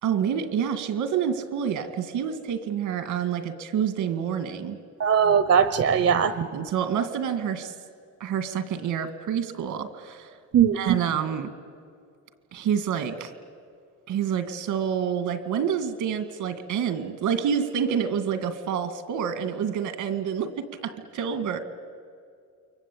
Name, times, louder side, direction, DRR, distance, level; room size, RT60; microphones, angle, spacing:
voice 1, 0.0-4.8 6.1-7.7 8.2-10.3 10.7-11.5 12.5-13.3 14.1-20.5 20.8-21.6, right 8 dB, 85° right, 10 dB, 2.2 m, -28 dB
voice 2, 5.0-6.3 10.5-10.9, right 7 dB, 50° right, 14 dB, 1.0 m, -20 dB
29.0 x 23.5 x 8.7 m, 2.2 s
cardioid pair, 90°, 30 cm